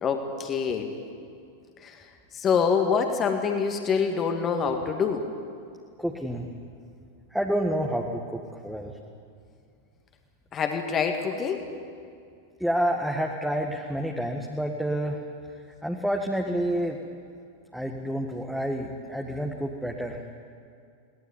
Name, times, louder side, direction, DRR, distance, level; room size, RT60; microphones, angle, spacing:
voice 1, 0.0-1.0 1.8-2.1 2.3-5.3 10.5-11.6, left 6 dB, 25° left, 4 dB, 2.1 m, -26 dB
voice 2, 6.0-6.5 7.3-9.0 12.6-15.2 15.8-17.0 17.7-20.2, equal, ahead, 1 dB, 1.8 m, -29 dB
22.0 x 18.5 x 9.9 m, 2.3 s
figure-of-eight pair, 90°, 0 cm